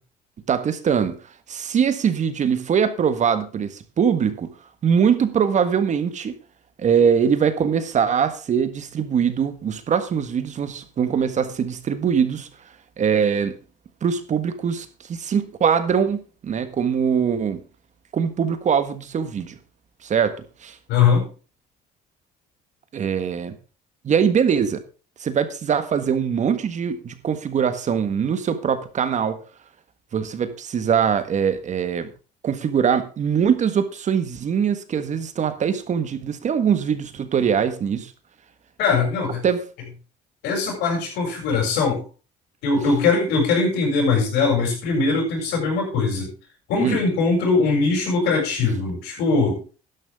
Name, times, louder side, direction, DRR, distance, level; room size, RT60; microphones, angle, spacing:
voice 1, 0.5-1.2 1.5-4.5 4.8-6.3 6.8-12.5 13.0-13.5 14.0-17.6 18.1-19.6 20.0-20.3 20.6-20.8 22.9-23.6 24.0-24.8 25.2-29.4 30.1-32.1 32.4-38.1 39.4-39.6 46.8-47.0, right 7 dB, 45° right, 1.5 m, -22 dB
voice 2, 20.9-21.3 38.8-39.4 40.4-42.0 42.6-46.3 46.7-49.6, left 4 dB, 85° left, 7.2 m, -21 dB
12.5 x 11.0 x 3.6 m
cardioid pair, 110°, 17 cm